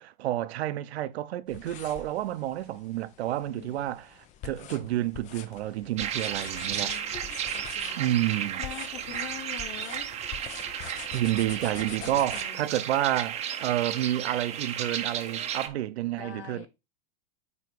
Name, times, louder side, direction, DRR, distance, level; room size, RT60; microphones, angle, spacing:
voice 1, 0.0-7.0 8.0-8.6 11.1-16.7, right 13 dB, 75° right, 0.8 m, -30 dB
sound 1, 1.5-12.4, left 9 dB, 25° left, 0.5 m, -45 dB
voice 2, 3.5-4.0 6.8-8.0 8.6-10.4 12.0-12.7 16.1-16.7, left 9 dB, 60° left, 2.3 m, -44 dB
sound 2, 6.0-15.7, right 9 dB, 20° right, 0.7 m, -34 dB
9.4 x 3.1 x 4.7 m
supercardioid pair, 145°, 32 cm